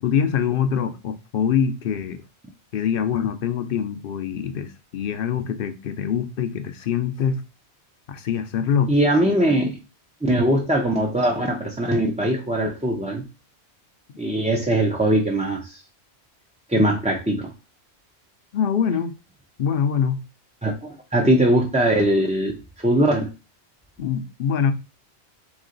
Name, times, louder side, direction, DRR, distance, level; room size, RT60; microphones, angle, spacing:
voice 1, 0.0-2.2 2.7-7.4 8.1-8.9 18.5-19.1 19.6-20.2 24.0-24.7, left 7 dB, 65° left, 0.7 m, -24 dB
voice 2, 8.9-9.8 10.2-13.2 14.2-15.8 16.7-17.4 20.6-23.3, right 1 dB, 10° right, 0.4 m, -21 dB
3.7 x 3.1 x 3.8 m
omnidirectional pair, 1.1 m